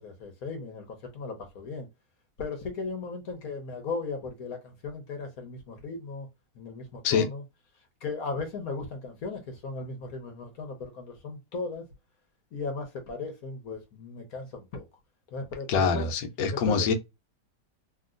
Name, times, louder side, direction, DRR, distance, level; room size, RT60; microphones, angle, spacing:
voice 1, 0.0-1.9 2.4-6.3 6.5-7.4 8.0-11.8 12.5-14.8 15.3-16.1 16.5-16.9, left 3 dB, 60° left, 1.2 m, -36 dB
voice 2, 15.7-16.9, left 5 dB, 85° left, 1.4 m, -25 dB
2.9 x 2.8 x 2.5 m
omnidirectional pair, 2.0 m